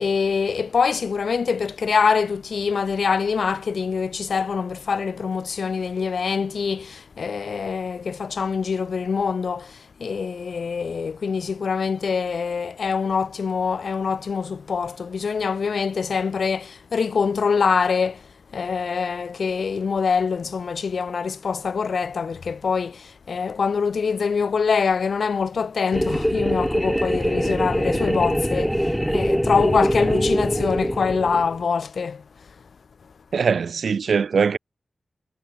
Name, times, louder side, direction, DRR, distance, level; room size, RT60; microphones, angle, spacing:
voice 1, 0.0-32.2, left 5 dB, 65° left, 0.6 m, -24 dB
sound 1, 25.9-31.7, equal, ahead, 0.7 m, -23 dB
voice 2, 33.3-34.6, right 6 dB, 70° right, 0.4 m, -21 dB
wide cardioid pair, 140°, 0 cm